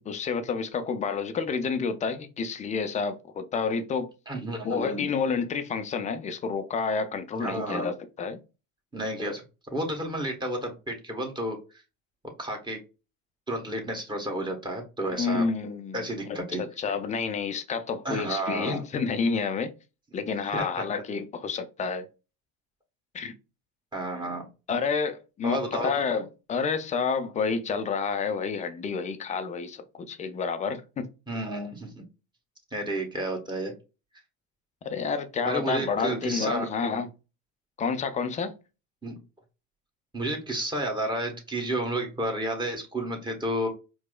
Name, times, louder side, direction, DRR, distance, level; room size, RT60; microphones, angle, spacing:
voice 1, 0.0-4.1 4.6-8.4 15.2-19.7 20.1-22.1 23.1-23.3 24.7-31.1 34.8-37.1 37.8-38.5, left 5 dB, 20° left, 0.3 m, -29 dB
voice 2, 4.3-5.1 7.4-7.9 8.9-9.4 9.7-11.6 12.4-12.8 13.5-15.4 15.9-16.6 18.0-18.8 20.2-20.8 23.9-24.4 25.4-25.9 31.3-32.0 32.7-33.7 35.4-36.7 39.0-39.1 40.1-43.7, right 1 dB, 10° right, 1.2 m, -31 dB
4.5 x 2.0 x 2.3 m
hypercardioid pair, 75°, 43 cm